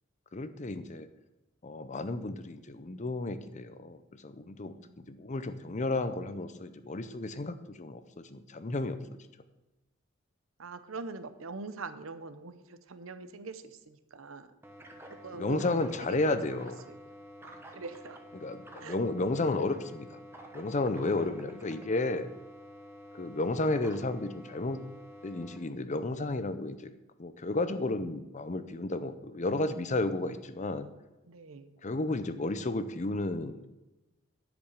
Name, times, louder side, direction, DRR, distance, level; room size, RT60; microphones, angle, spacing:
voice 1, 0.3-1.1 1.6-9.0 15.4-16.8 18.3-20.2 20.5-22.3 23.1-24.8 25.2-26.9 27.2-30.9 31.8-33.7, left 2 dB, 35° left, 11 dB, 0.6 m, -32 dB
voice 2, 10.6-14.5 15.2-16.4 16.9-18.2 18.8-19.0 20.8-21.1 31.2-31.8, right 3 dB, 85° right, 11 dB, 0.8 m, -43 dB
sound 1, 14.6-25.6, equal, 10° right, 1.0 m, -49 dB
10.0 x 5.1 x 6.6 m, 1.0 s
head